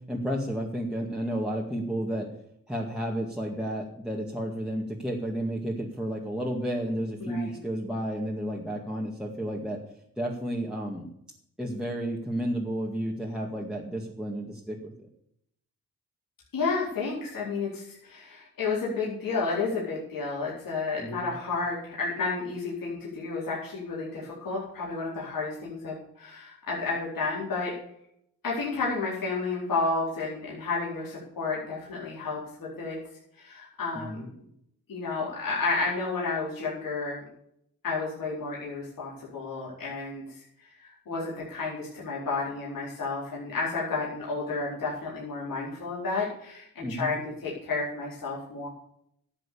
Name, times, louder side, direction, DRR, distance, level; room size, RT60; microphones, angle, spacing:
voice 1, 0.1-2.3 2.7-9.8 10.2-11.1 11.6-14.9 21.0-21.3 33.9-34.2 46.8-47.1, equal, ahead, -3 dB, 2.0 m, -32 dB
voice 2, 7.2-7.6 16.5-27.7 28.4-33.0 33.4-34.3 34.9-37.2 37.8-40.4 40.8-48.7, left 3 dB, 75° left, -6 dB, 4.5 m, -31 dB
12.5 x 8.0 x 7.0 m, 0.72 s
cardioid pair, 80°, 34 cm